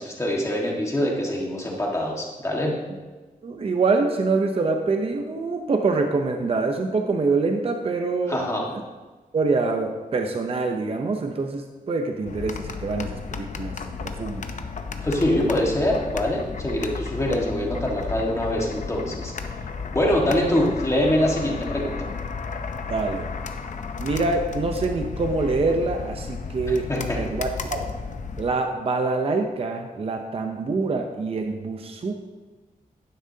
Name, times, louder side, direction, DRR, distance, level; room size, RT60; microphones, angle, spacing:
voice 1, 0.0-2.7 8.3-8.7 15.0-19.3 19.9-22.1 26.7-27.2, left 1 dB, 20° left, -2 dB, 1.6 m, -24 dB
voice 2, 3.4-8.4 9.3-14.5 22.9-23.3 24.0-26.9 27.1-27.9 28.4-32.2, right 3 dB, 40° right, 4 dB, 0.7 m, -25 dB
sound 1, 12.2-28.5, left 5 dB, 55° left, 0.7 m, -33 dB
11.5 x 9.8 x 2.8 m, 1.3 s
wide cardioid pair, 175°, 15 cm